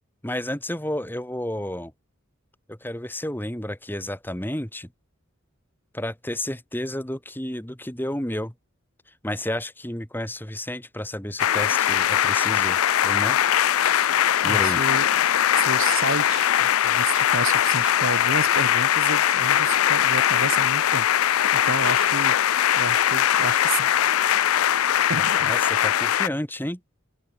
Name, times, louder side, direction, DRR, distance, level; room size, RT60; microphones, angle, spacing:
voice 1, 0.2-1.9 2.7-4.9 5.9-8.5 9.2-13.4 14.4-14.8 25.4-26.8, left 1 dB, 10° left, 2.4 m, -31 dB
sound 1, 11.4-26.3, left 10 dB, 85° left, 0.5 m, -21 dB
voice 2, 14.2-15.1 15.5-22.4 22.7-23.9 25.1-25.5, right 3 dB, 70° right, 5.4 m, -31 dB
head